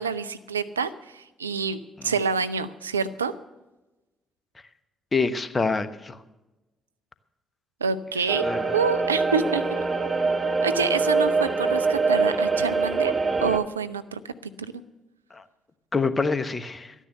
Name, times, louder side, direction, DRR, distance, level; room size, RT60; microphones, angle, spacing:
voice 1, 0.0-3.3 7.8-8.4 8.7-9.6 10.6-13.1 13.4-14.7, right 5 dB, 85° right, 13 dB, 0.4 m, -27 dB
voice 2, 5.1-6.2 8.4-8.7 15.3-15.4 15.9-16.9, left 4 dB, 30° left, 12 dB, 1.0 m, -26 dB
sound 1, 8.3-13.6, right 4 dB, 30° right, 1.4 m, -24 dB
13.5 x 9.9 x 6.5 m, 1.0 s
figure-of-eight pair, 45°, 0 cm